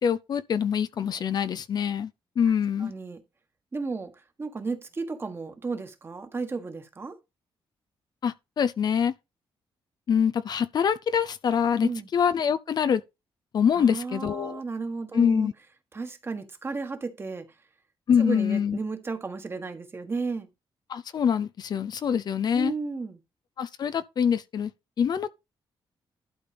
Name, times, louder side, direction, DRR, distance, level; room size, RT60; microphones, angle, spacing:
voice 1, 0.0-2.1 2.4-2.9 8.2-9.1 10.1-13.0 13.5-14.6 15.1-15.5 18.1-18.8 20.9-22.7 23.6-24.7 25.0-25.3, left 7 dB, 50° left, 0.5 m, -25 dB
voice 2, 2.8-3.2 3.7-7.2 11.8-12.1 13.8-15.5 15.9-17.5 18.2-20.5 22.5-23.2, right 4 dB, 25° right, 1.5 m, -33 dB
11.5 x 4.3 x 5.2 m
wide cardioid pair, 140°, 9 cm